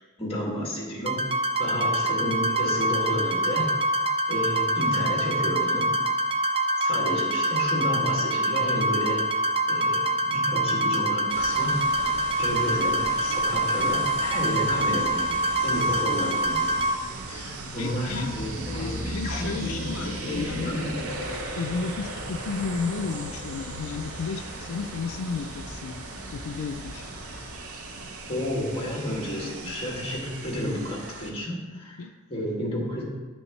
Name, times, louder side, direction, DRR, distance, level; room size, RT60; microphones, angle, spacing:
voice 1, 0.2-1.3 1.6-3.7 4.0-5.9 6.8-11.8 12.4-16.7 17.3-21.0 28.3-33.0, left 1 dB, 25° left, -3 dB, 2.2 m, -31 dB
sound 1, 1.1-16.9, right 1 dB, 25° right, 0.6 m, -25 dB
sound 2, 11.3-31.3, right 3 dB, 75° right, 0.9 m, -39 dB
voice 2, 17.8-18.3 18.7-20.7 21.6-26.0 26.3-27.1 32.0-32.1, left 5 dB, 80° left, 6 dB, 0.4 m, -33 dB
sound 3, 18.1-27.5, left 1 dB, 50° left, 2.3 m, -39 dB
10.0 x 6.2 x 3.2 m, 1.3 s
head